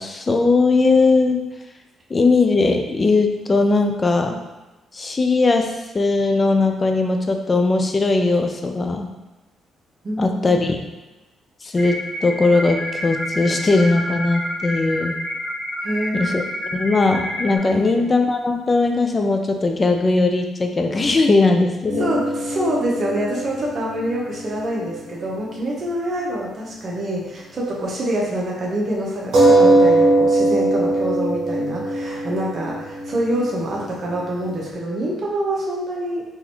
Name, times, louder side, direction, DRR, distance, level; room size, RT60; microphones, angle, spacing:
voice 1, 0.0-1.4 2.1-4.4 4.9-9.1 10.2-10.8 11.6-15.2 16.1-16.4 16.7-22.1, left 3 dB, 30° left, 4 dB, 0.4 m, -19 dB
voice 2, 10.0-10.6 15.8-16.2 17.7-18.1 22.0-36.2, right 1 dB, 45° right, -4 dB, 1.0 m, -26 dB
sound 1, 11.8-17.6, left 1 dB, 5° left, 1.4 m, -29 dB
sound 2, 21.9-25.7 26.0-26.1 29.3-34.6, right 2 dB, 65° right, 1.2 m, -21 dB
3.9 x 2.7 x 3.0 m, 1.1 s
cardioid pair, 90°, 0 cm